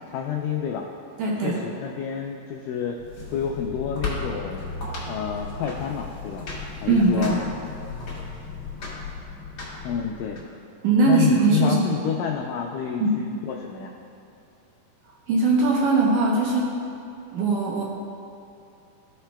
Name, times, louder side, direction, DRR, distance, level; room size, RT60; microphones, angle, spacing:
voice 1, 0.1-0.9 1.4-3.0 3.3-4.6 5.1-6.5 6.8-7.4 9.8-10.4 11.1-13.9, left 8 dB, 85° left, 1 dB, 1.9 m, -29 dB
voice 2, 1.2-1.6 6.9-7.4 10.8-12.0 13.0-13.1 15.3-16.7 17.3-17.8, right 3 dB, 75° right, -4 dB, 2.0 m, -20 dB
sound 1, 3.0-10.4, left 3 dB, 40° left, 1.8 m, -35 dB
14.0 x 5.7 x 2.2 m, 2.6 s
omnidirectional pair, 4.4 m